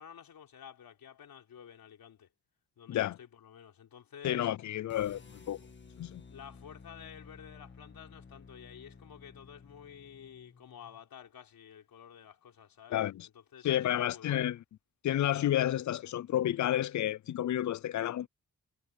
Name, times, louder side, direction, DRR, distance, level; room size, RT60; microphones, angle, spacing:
voice 1, 0.0-2.3 2.8-4.5 6.3-13.0 13.3-14.5, left 8 dB, 85° left, 3.8 m, -51 dB
voice 2, 4.2-5.6 6.0-6.2 12.9-13.3 13.6-14.6 15.0-18.3, left 12 dB, 55° left, 0.4 m, -30 dB
sound 1, 4.9-11.0, left 4 dB, 30° left, 2.1 m, -54 dB
wide cardioid pair, 135°, 35 cm